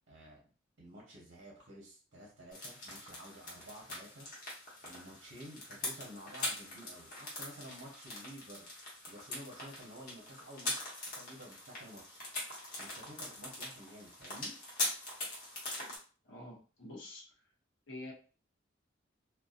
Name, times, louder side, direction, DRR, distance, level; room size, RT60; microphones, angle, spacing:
voice 1, 0.1-0.4 0.8-4.3 4.8-12.2 12.8-14.5, equal, 60° right, -3 dB, 0.8 m, -52 dB
sound 1, 2.5-16.0, left 1 dB, 45° left, 0.9 m, -42 dB
voice 2, 16.2-17.2 17.9-18.1, left 1 dB, 75° left, -3 dB, 0.8 m, -47 dB
2.6 x 2.2 x 2.4 m, 0.37 s
head